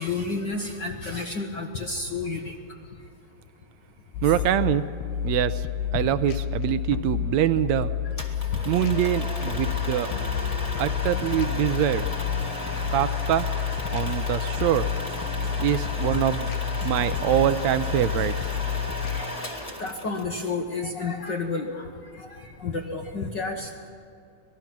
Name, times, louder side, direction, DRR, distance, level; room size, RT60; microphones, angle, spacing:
voice 1, 0.0-2.5 8.2-8.3 19.1-21.9 22.1-23.9, left 3 dB, 60° left, 3 dB, 1.2 m, -31 dB
sound 1, 4.1-19.2, left 9 dB, 85° left, 2.4 m, -30 dB
voice 2, 4.2-4.8 5.2-5.7 5.9-7.9 8.6-10.1 10.8-12.1 12.9-13.5 13.9-14.9 15.6-16.5 16.8-18.3, right 12 dB, 80° right, 13 dB, 1.7 m, -24 dB
sound 2, 8.2-20.5, left 1 dB, 15° left, 1.3 m, -34 dB
sound 3, 13.4-18.9, right 4 dB, 55° right, 1.6 m, -46 dB
25.5 x 19.5 x 5.9 m, 2.6 s
omnidirectional pair, 3.6 m